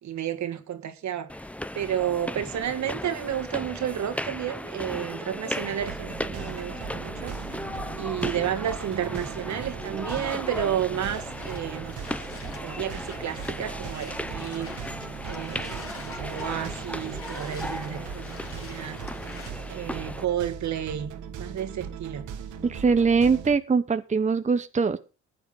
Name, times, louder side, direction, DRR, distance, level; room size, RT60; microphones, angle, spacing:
voice 1, 0.0-1.3 1.7-7.4 7.9-12.0 12.6-14.7 15.3-19.0 19.7-22.2, right 10 dB, 65° right, 2.2 m, -31 dB
sound 1, 1.3-20.2, left 1 dB, 5° left, 0.8 m, -36 dB
sound 2, 5.8-23.6, right 7 dB, 90° right, 2.4 m, -39 dB
sound 3, 10.8-19.5, left 4 dB, 45° left, 4.1 m, -47 dB
voice 2, 22.6-25.0, right 5 dB, 25° right, 1.0 m, -22 dB
15.0 x 9.3 x 5.2 m
cardioid pair, 90°, 30 cm